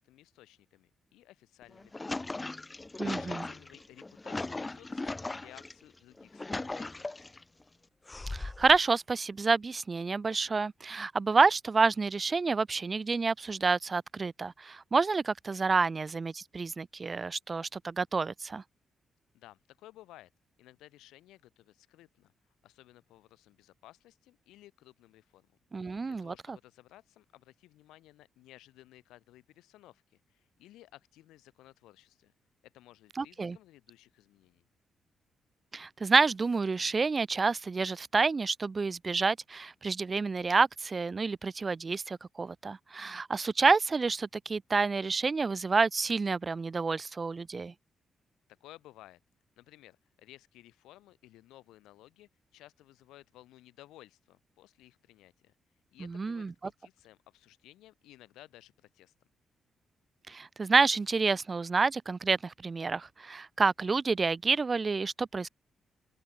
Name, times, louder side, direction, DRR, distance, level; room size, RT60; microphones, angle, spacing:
voice 1, 0.0-2.5 3.0-7.3 19.3-20.3 20.6-22.3 22.6-25.5 25.8-32.3 32.6-34.7 48.6-49.2 49.6-55.5 55.9-59.1, left 15 dB, 80° left, 7.6 m, -56 dB
sound 1, 1.6-5.7 6.2-7.4 8.1-8.8, left 2 dB, 25° left, 0.6 m, -38 dB
voice 2, 3.0-3.4 8.3-18.6 25.7-26.6 33.2-33.6 35.7-47.7 56.0-56.5 60.3-65.5, right 4 dB, 40° right, 0.6 m, -28 dB
hypercardioid pair, 45°, 0 cm